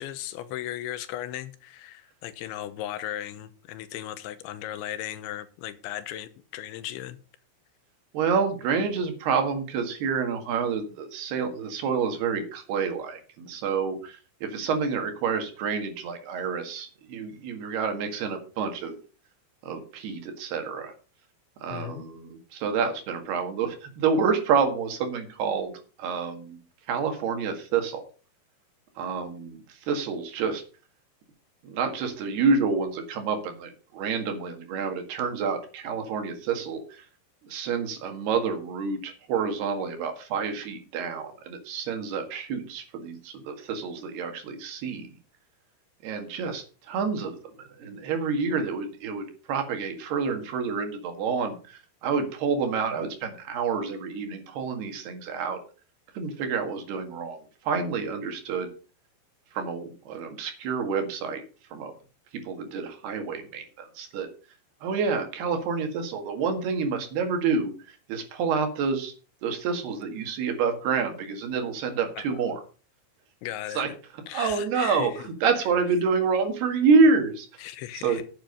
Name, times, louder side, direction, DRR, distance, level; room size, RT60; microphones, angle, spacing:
voice 1, 0.0-7.2 21.7-22.0 72.2-72.4 73.4-73.8 74.3-75.2 77.6-78.3, left 12 dB, 85° left, 3.2 m, -36 dB
voice 2, 8.1-19.0 19.6-20.9 21.6-25.7 26.0-26.6 26.9-28.0 29.0-30.6 31.6-37.1 37.4-45.1 46.0-47.3 47.6-55.6 56.1-57.4 57.7-58.7 59.5-61.4 61.7-61.9 62.5-64.3 64.8-69.1 69.4-72.6 73.8-73.9 74.3-77.5 77.9-78.3, right 5 dB, 65° right, 3.7 m, -28 dB
10.5 x 8.9 x 5.2 m
omnidirectional pair, 5.3 m